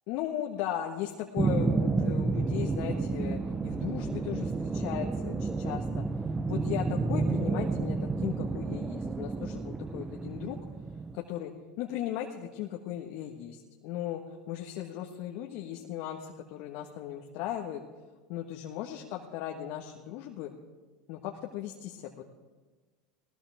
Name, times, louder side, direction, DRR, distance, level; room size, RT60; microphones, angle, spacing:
voice 1, 0.1-6.0 6.5-10.6 11.1-11.5 11.8-14.2 14.5-17.8 18.3-20.5 21.1-22.2, left 11 dB, 65° left, 2 dB, 1.6 m, -37 dB
sound 1, 1.4-11.2, right 3 dB, 20° right, 0.8 m, -30 dB
20.0 x 19.0 x 3.6 m, 1.3 s
hypercardioid pair, 90°, 3 cm